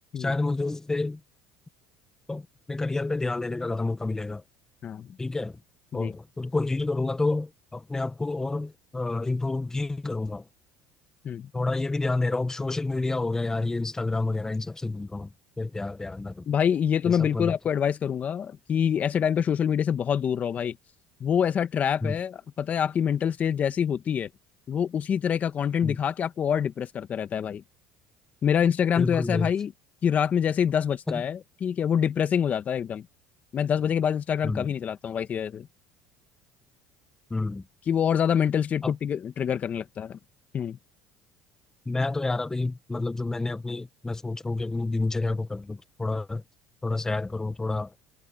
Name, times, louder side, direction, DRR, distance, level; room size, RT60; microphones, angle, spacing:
voice 1, 0.2-1.2 2.3-4.4 5.2-5.6 5.9-10.4 11.5-16.5 17.0-17.6 22.0-22.2 25.8-26.0 29.0-29.5 31.1-31.2 34.4-34.7 37.3-37.6 38.8-38.9 41.8-46.4 46.8-47.9, left 2 dB, 15° left, 1.5 m, -29 dB
voice 2, 16.5-20.8 21.2-24.3 24.7-27.6 28.4-29.7 30.0-33.0 33.5-35.7 37.9-40.2 40.5-40.8, left 8 dB, 40° left, 1.4 m, -26 dB
supercardioid pair, 85°, 4 cm